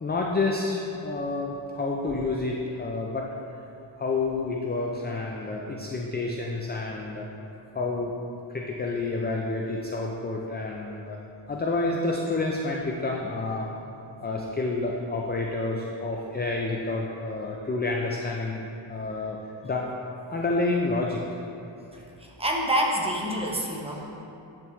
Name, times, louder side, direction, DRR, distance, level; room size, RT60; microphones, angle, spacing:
voice 1, 0.0-3.3 4.0-7.3 7.7-8.1 8.5-11.2 11.5-13.7 14.2-19.4 19.6-19.9 20.3-21.2 21.9-22.0 22.8-22.9 23.2-23.6 23.9-24.2, left 3 dB, 25° left, 0 dB, 0.4 m, -29 dB
voice 2, 21.9-24.2, equal, 10° right, -2 dB, 0.9 m, -28 dB
9.7 x 3.5 x 3.1 m, 2.8 s
cardioid pair, 80°, 48 cm